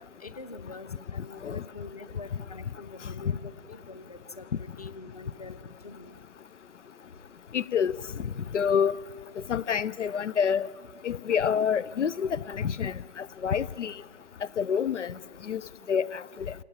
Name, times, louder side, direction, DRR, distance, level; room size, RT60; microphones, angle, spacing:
voice 1, 0.0-5.6 5.8-6.1, left 3 dB, 35° left, 0.9 m, -45 dB
voice 2, 7.5-8.0 8.5-9.0 9.5-10.7 11.0-14.0 14.6-15.1 15.5-15.6 15.9-16.5, left 7 dB, 85° left, 0.6 m, -27 dB
26.5 x 18.0 x 8.6 m
hypercardioid pair, 175°, 35 cm